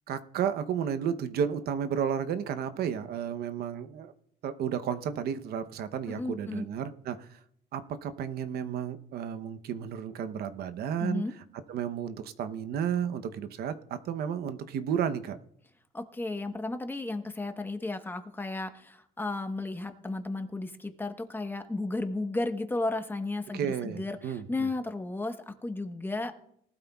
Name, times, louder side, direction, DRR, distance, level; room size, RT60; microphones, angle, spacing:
voice 1, 0.1-4.1 4.4-7.4 7.7-11.2 11.7-15.4 23.5-24.7, right 8 dB, 65° right, 10 dB, 0.8 m, -32 dB
voice 2, 6.1-6.6 11.0-11.3 15.9-26.4, left 2 dB, 10° left, 7 dB, 1.1 m, -34 dB
19.0 x 12.5 x 2.3 m, 0.71 s
cardioid pair, 110°, 17 cm